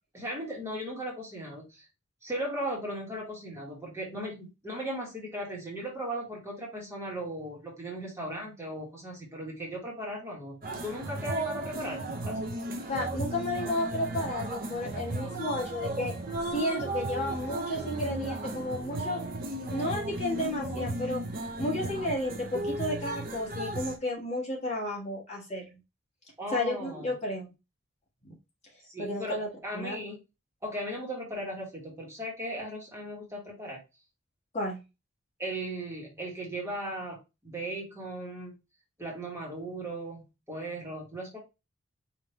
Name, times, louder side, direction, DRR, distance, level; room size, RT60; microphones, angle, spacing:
voice 1, 0.1-1.9 2.2-12.4 26.4-27.1 28.8-30.2 30.6-33.8 35.4-38.6 39.0-41.4, right 1 dB, 15° right, -3 dB, 1.5 m, -37 dB
sound 1, 10.6-24.0, right 1 dB, 45° right, 0.7 m, -35 dB
voice 2, 12.9-16.1 16.5-19.2 19.7-21.2 21.6-25.7 26.5-27.5 28.2-28.3 29.0-29.5 29.7-29.9 34.5-34.8, left 1 dB, 30° left, -2 dB, 1.5 m, -32 dB
5.0 x 2.8 x 3.0 m, 0.26 s
head